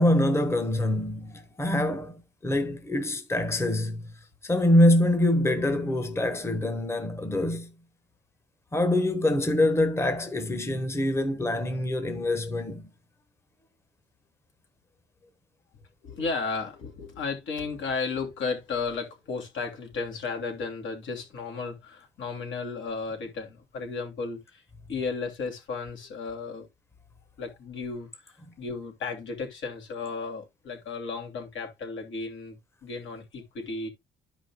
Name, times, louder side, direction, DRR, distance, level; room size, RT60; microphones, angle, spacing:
voice 1, 0.0-4.0 4.4-7.7 8.7-12.8, left 1 dB, 15° left, 1.1 m, -25 dB
voice 2, 16.0-24.6 24.9-26.7 27.4-28.2 28.6-33.9, left 4 dB, 75° left, 2.9 m, -34 dB
12.5 x 5.1 x 2.3 m
cardioid pair, 90°, 20 cm